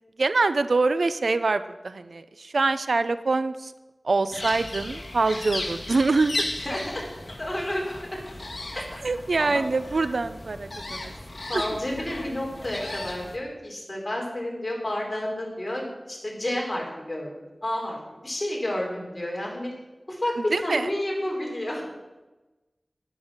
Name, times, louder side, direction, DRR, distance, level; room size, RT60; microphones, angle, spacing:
voice 1, 0.2-3.7 4.0-6.5 9.0-11.1 11.5-11.6 20.4-20.9, right 3 dB, 90° right, 13 dB, 0.5 m, -25 dB
sound 1, 4.3-13.4, left 2 dB, 55° left, 1.8 m, -36 dB
voice 2, 6.6-7.0 7.4-8.2 8.7-8.9 9.4-9.6 11.5-17.3 17.6-19.7 20.1-21.9, left 1 dB, 30° left, -2 dB, 4.5 m, -30 dB
11.0 x 10.0 x 6.5 m, 1.1 s
wide cardioid pair, 55°, 0 cm